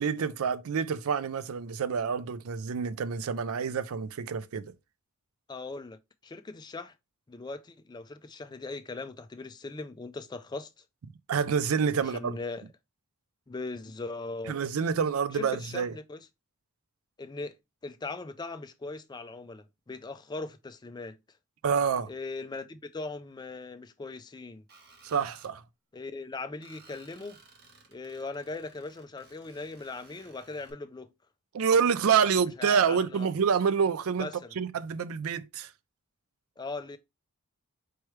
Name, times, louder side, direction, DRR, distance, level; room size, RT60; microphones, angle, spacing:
voice 1, 0.0-4.7 11.3-12.4 14.5-15.9 21.6-22.1 25.0-25.6 31.5-34.3 34.6-35.7, right 6 dB, 65° right, 0.4 m, -27 dB
voice 2, 5.5-6.0 6.2-6.9 7.3-10.7 12.1-12.7 13.5-14.6 15.3-16.2 17.2-17.6 17.8-21.2 22.1-24.6 25.9-27.4 27.9-31.1 32.6-33.3 34.2-34.5 36.6-37.0, left 3 dB, 20° left, 0.3 m, -39 dB
Screech, 24.7-25.5 26.6-30.7, right 4 dB, 45° right, 1.0 m, -57 dB
4.6 x 3.2 x 3.0 m
head